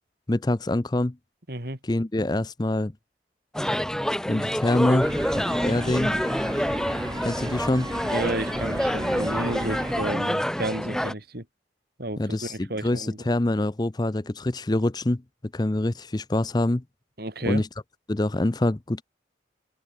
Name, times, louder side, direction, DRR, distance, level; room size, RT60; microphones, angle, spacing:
voice 1, 0.3-1.2 1.8-2.9 4.3-5.1 5.3-6.2 7.2-7.9 12.2-15.2 15.5-16.8 17.5-17.7 18.1-19.0, left 1 dB, 20° left, 0.6 m, -25 dB
voice 2, 1.5-1.8 8.0-11.5 12.0-13.2 17.2-17.6, right 1 dB, 55° right, 3.5 m, -32 dB
sound 1, 3.5-11.1, equal, 5° left, 1.9 m, -27 dB
sound 2, 5.0-10.1, right 1 dB, 25° right, 1.6 m, -34 dB
open air
head